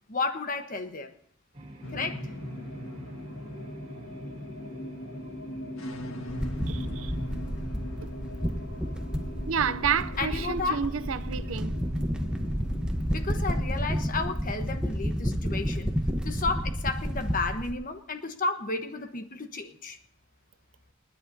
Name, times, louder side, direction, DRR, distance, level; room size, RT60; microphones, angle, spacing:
voice 1, 0.1-1.1 1.9-2.2 10.2-10.8 13.1-15.9 16.2-20.0, left 3 dB, 45° left, 1.2 m, -32 dB
sound 1, 1.5-13.8, right 1 dB, 30° right, 3.6 m, -46 dB
sound 2, 1.8-16.5, left 1 dB, 80° left, 1.7 m, -42 dB
sound 3, 6.3-17.7, equal, 5° right, 1.0 m, -31 dB
voice 2, 6.7-7.1 9.5-11.8, right 7 dB, 85° right, 0.6 m, -30 dB
29.5 x 10.0 x 2.8 m
head